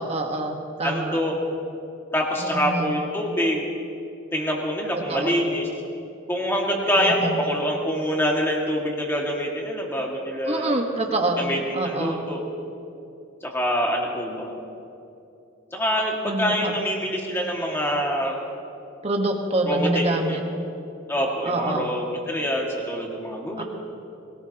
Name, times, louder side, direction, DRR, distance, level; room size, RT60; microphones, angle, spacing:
voice 1, 0.0-1.2 2.4-2.9 4.9-5.5 7.0-7.4 10.5-11.4 11.7-12.2 16.2-16.8 19.0-20.4 21.4-21.9 23.6-23.7, right 2 dB, 30° right, 2 dB, 1.3 m, -26 dB
voice 2, 0.8-1.3 2.1-3.7 4.3-5.7 6.3-10.7 11.4-12.5 13.4-14.5 15.7-18.4 19.7-20.4 21.1-23.6, equal, 10° left, -1 dB, 2.0 m, -25 dB
21.0 x 18.5 x 2.9 m, 2.7 s
head